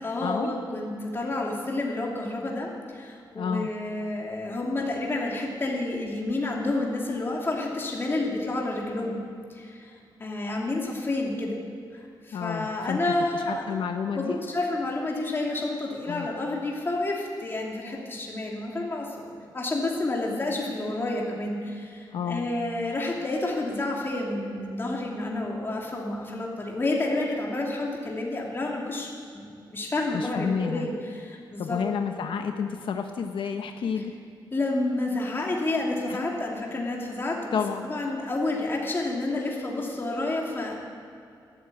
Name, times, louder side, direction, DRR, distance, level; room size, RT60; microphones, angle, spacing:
voice 1, 0.0-9.2 9.5-9.9 10.2-11.6 11.9-13.6 14.1-19.3 19.5-31.8 32.3-32.4 34.5-40.8, left 2 dB, 25° left, -2 dB, 2.8 m, -30 dB
voice 2, 3.3-3.7 12.3-13.0 13.3-14.4 16.1-16.3 22.1-22.5 30.1-30.9 31.6-34.2 37.5-37.9, left 6 dB, 85° left, 5 dB, 0.9 m, -30 dB
13.0 x 12.0 x 8.7 m, 2.4 s
wide cardioid pair, 155°, 8 cm